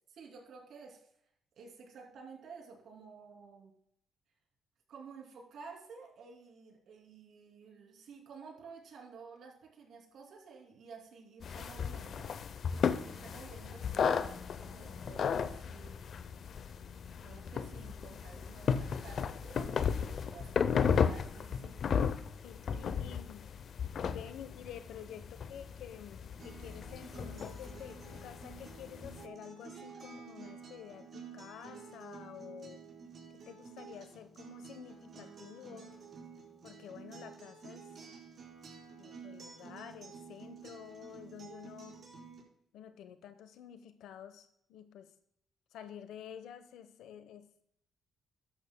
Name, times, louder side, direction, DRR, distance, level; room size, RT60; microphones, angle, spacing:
voice 1, 0.1-1.1 1.6-3.7 4.9-12.3 12.8-16.1 17.2-20.8 21.1-21.7 22.7-23.2, right 5 dB, 70° right, 0 dB, 2.8 m, -52 dB
sound 1, 11.4-29.2, left 7 dB, 60° left, 0.6 m, -35 dB
voice 2, 22.4-23.5 24.0-32.8 33.3-35.9 36.6-37.9 39.0-42.0 42.7-45.1 45.7-47.5, left 9 dB, 80° left, 10 dB, 1.0 m, -50 dB
Acoustic guitar, 26.4-42.4, right 5 dB, 50° right, 4.3 m, -51 dB
13.5 x 10.5 x 2.2 m, 0.73 s
cardioid pair, 90°, 0 cm